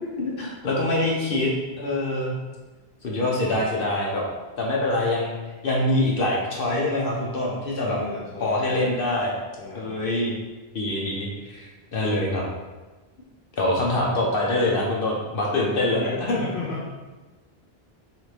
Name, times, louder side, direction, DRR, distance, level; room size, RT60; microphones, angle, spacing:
voice 1, 0.2-1.5 1.8-2.3 3.0-4.2 4.6-5.3 5.6-8.0 8.4-9.3 9.7-10.3 10.7-12.4 13.6-16.5, left 1 dB, 60° left, -3 dB, 0.9 m, -24 dB
voice 2, 7.8-9.0 9.6-10.0 15.9-16.9, left 3 dB, 85° left, -5 dB, 1.1 m, -35 dB
4.3 x 3.3 x 3.2 m, 1.2 s
omnidirectional pair, 1.1 m